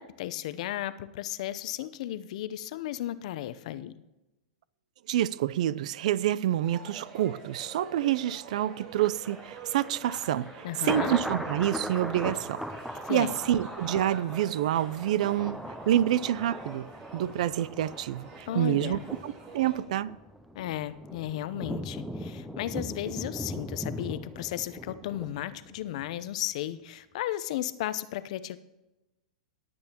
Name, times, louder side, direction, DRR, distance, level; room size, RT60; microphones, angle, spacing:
voice 1, 0.0-3.9 10.6-11.1 13.1-13.4 18.5-19.1 20.5-28.6, left 13 dB, 60° left, 0.7 m, -34 dB
voice 2, 5.1-12.6 13.1-20.1, right 12 dB, 65° right, 0.4 m, -28 dB
sound 1, 6.6-19.8, right 4 dB, 40° right, 3.7 m, -47 dB
Thunder, 8.9-26.1 26.4-26.5, equal, ahead, 0.6 m, -39 dB
20.5 x 8.7 x 2.9 m
hypercardioid pair, 130°, 4 cm